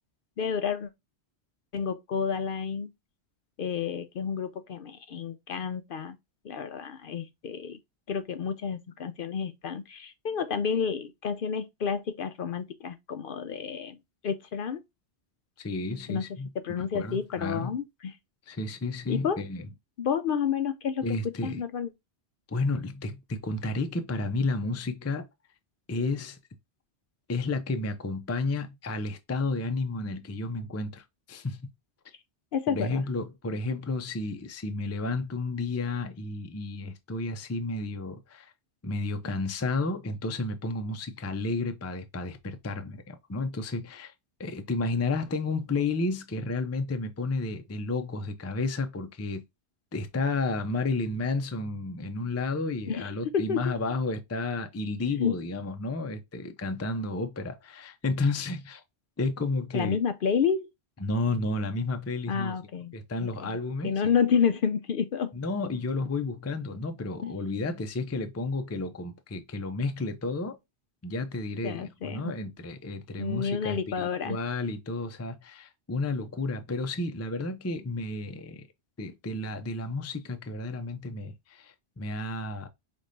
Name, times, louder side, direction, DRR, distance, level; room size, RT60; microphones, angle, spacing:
voice 1, 0.4-0.9 1.7-2.9 3.6-6.2 6.4-7.8 8.1-14.0 14.2-14.8 16.1-16.2 16.6-18.2 19.1-19.4 20.0-21.9 32.5-33.0 52.9-53.7 55.2-55.3 59.7-60.7 62.3-62.9 63.2-63.6 63.8-65.3 67.2-67.3 71.6-72.3 73.2-74.4, left 7 dB, 60° left, 0.6 m, -30 dB
voice 2, 15.6-16.5 16.8-17.8 18.5-19.7 21.0-21.6 22.5-25.3 25.9-26.4 27.3-31.7 32.7-38.5 38.8-44.1 44.4-49.4 49.9-58.8 59.2-60.0 61.0-62.5 62.9-63.9 65.3-70.6 71.0-78.6 79.0-82.7, left 3 dB, 25° left, 0.3 m, -32 dB
5.1 x 3.2 x 2.6 m
omnidirectional pair, 1.2 m